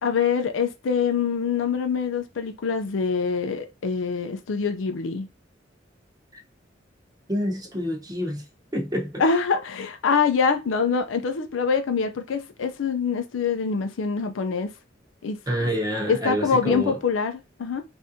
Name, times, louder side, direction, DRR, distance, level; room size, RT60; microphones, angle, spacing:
voice 1, 0.0-5.3 9.2-14.7 15.2-15.7 16.1-17.8, left 5 dB, 85° left, 0.5 m, -25 dB
voice 2, 7.3-8.4 8.7-9.2 15.5-17.0, equal, 20° right, 0.8 m, -27 dB
3.5 x 2.6 x 2.6 m
head